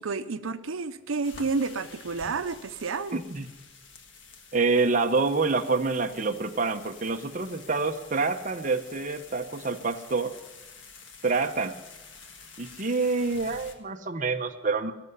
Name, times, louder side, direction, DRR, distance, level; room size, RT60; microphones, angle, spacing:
voice 1, 0.0-3.2, right 4 dB, 80° right, 11 dB, 0.7 m, -30 dB
sound 1, 1.2-13.7, left 4 dB, 65° left, 1.6 m, -49 dB
voice 2, 3.1-3.5 4.5-10.3 11.2-11.7 12.6-14.9, right 4 dB, 40° right, 5 dB, 0.8 m, -27 dB
18.0 x 6.8 x 9.6 m, 1.1 s
head